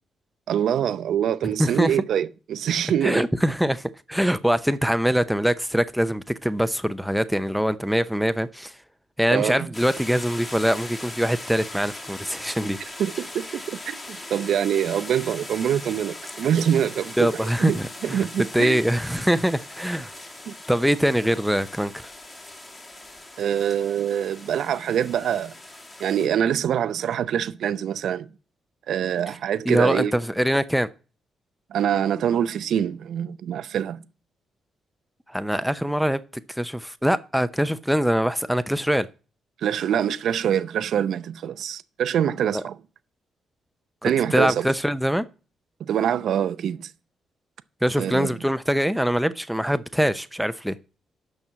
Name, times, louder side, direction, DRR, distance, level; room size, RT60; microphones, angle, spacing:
voice 1, 0.5-3.2 9.3-9.7 13.0-18.8 20.5-20.6 23.4-25.5 26.0-28.3 28.9-30.2 31.7-34.0 39.6-42.8 44.0-44.7 45.8-46.9 48.0-48.4, right 9 dB, 70° right, 0.6 m, -25 dB
voice 2, 1.6-1.9 3.0-8.7 9.2-12.8 17.2-18.2 18.5-20.1 20.7-22.1 29.7-30.9 35.3-36.2 36.5-39.1 42.5-42.6 44.0-45.2 47.8-50.8, equal, ahead, 0.7 m, -23 dB
sound 1, 9.7-26.3, left 2 dB, 25° left, 2.4 m, -40 dB
8.7 x 6.1 x 7.9 m
cardioid pair, 80°, 0 cm